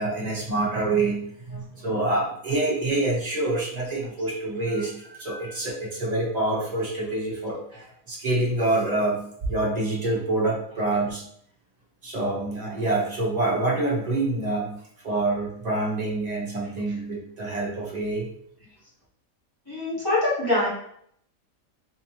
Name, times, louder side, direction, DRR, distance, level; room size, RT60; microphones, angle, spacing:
voice 1, 0.0-11.2 12.0-14.7 15.0-18.3, right 2 dB, 30° right, -4 dB, 1.0 m, -26 dB
voice 2, 19.7-20.7, left 2 dB, 15° left, -9 dB, 1.5 m, -24 dB
3.8 x 3.2 x 2.8 m, 0.69 s
omnidirectional pair, 1.5 m